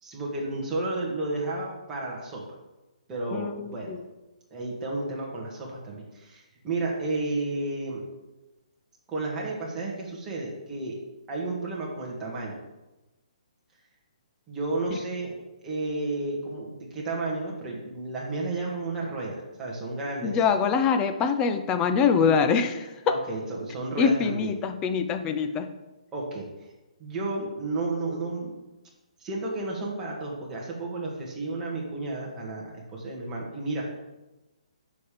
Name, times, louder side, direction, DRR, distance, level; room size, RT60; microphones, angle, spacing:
voice 1, 0.0-2.4 3.1-4.0 4.5-8.0 9.1-11.0 11.3-12.6 14.5-20.4 23.1-24.5 26.1-26.7 27.0-28.5 29.2-33.9, right 2 dB, 15° right, -4 dB, 1.7 m, -32 dB
voice 2, 3.3-4.0 20.2-22.9 24.0-25.7, left 6 dB, 15° left, 8 dB, 0.5 m, -24 dB
6.9 x 5.1 x 5.1 m, 1.0 s
hypercardioid pair, 160°, 4 cm